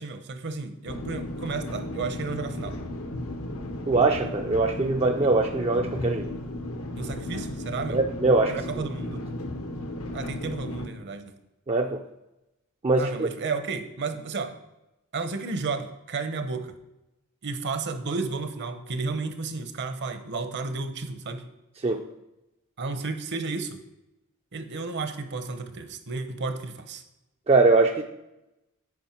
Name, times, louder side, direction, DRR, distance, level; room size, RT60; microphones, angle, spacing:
voice 1, 0.0-2.8 5.2-5.3 7.0-8.0 8.5-9.3 10.1-11.3 13.0-14.5 15.1-16.7 17.4-21.5 22.8-23.8 24.5-27.0, right 4 dB, 50° right, 8 dB, 0.8 m, -32 dB
sound 1, 0.9-10.9, left 1 dB, 75° left, 0.9 m, -34 dB
voice 2, 3.9-6.3 7.9-8.9 11.7-12.0 12.8-13.3 21.8-22.1 27.5-28.0, right 3 dB, 30° right, 3 dB, 0.4 m, -22 dB
9.6 x 5.1 x 4.4 m, 0.94 s
head